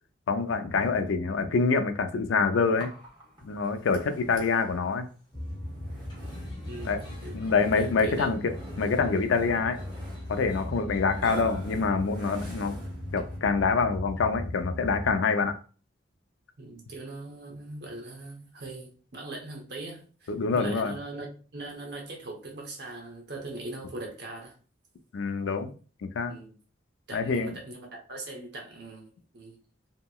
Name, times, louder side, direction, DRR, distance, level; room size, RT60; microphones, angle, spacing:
voice 1, 0.3-2.9 3.4-5.1 6.8-7.0 7.3-8.5 8.8-9.8 10.3-12.8 13.1-15.6 20.3-21.0 25.1-25.7 26.2-26.4 27.1-27.5, left 4 dB, 80° left, 0.4 m, -26 dB
Burping eructation, 2.8-13.5, right 1 dB, 25° right, 0.9 m, -46 dB
sound 1, 5.3-15.2, left 1 dB, 20° left, 0.7 m, -38 dB
voice 2, 6.7-7.3 7.8-8.3 16.6-21.3 21.5-24.6 26.3-26.5 27.1-29.1 29.3-29.6, right 2 dB, 55° right, 0.8 m, -40 dB
2.8 x 2.8 x 2.3 m
head